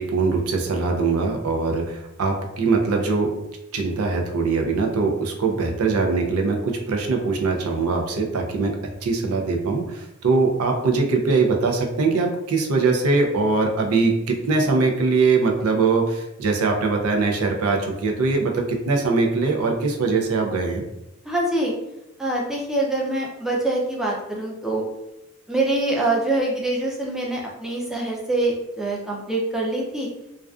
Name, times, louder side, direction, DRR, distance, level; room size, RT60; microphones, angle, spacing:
voice 1, 0.0-3.3 3.7-20.8, right 4 dB, 85° right, 2 dB, 0.4 m, -22 dB
voice 2, 21.3-21.7 22.2-24.8 25.5-30.1, right 2 dB, ahead, -3 dB, 0.4 m, -24 dB
2.4 x 2.3 x 2.3 m, 0.91 s
head